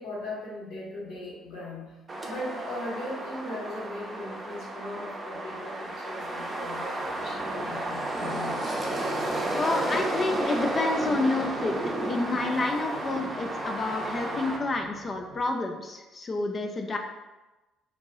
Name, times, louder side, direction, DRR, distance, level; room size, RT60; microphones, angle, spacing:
voice 1, 0.0-8.7, left 1 dB, 65° left, -5 dB, 1.1 m, -38 dB
sound 1, 2.1-14.6, right 1 dB, 35° right, 0.6 m, -32 dB
sound 2, 7.0-15.4, right 5 dB, 85° right, 0.4 m, -49 dB
voice 2, 9.5-11.8 12.1-17.0, left 2 dB, 40° left, 3 dB, 0.4 m, -29 dB
2.9 x 2.5 x 2.9 m, 1.1 s
hypercardioid pair, 50°, 0 cm